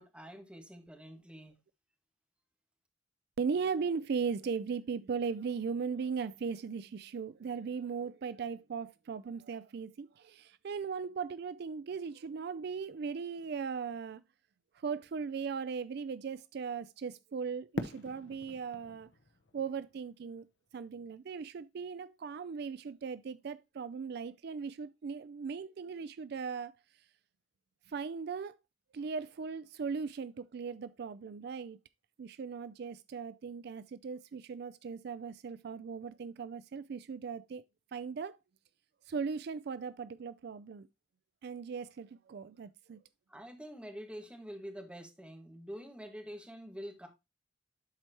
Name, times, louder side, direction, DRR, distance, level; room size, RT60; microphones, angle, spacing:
voice 1, 0.0-1.5 43.3-47.1, equal, 5° right, 1.7 m, -46 dB
voice 2, 3.4-14.2 14.8-19.1 19.5-20.4 20.7-26.7 27.9-28.5 28.9-31.8 32.2-37.6 37.9-38.4 39.1-40.9 41.4-43.0, right 5 dB, 60° right, 0.4 m, -38 dB
Fireworks, 17.7-20.8, left 2 dB, 70° left, 0.9 m, -43 dB
11.0 x 4.6 x 2.9 m
head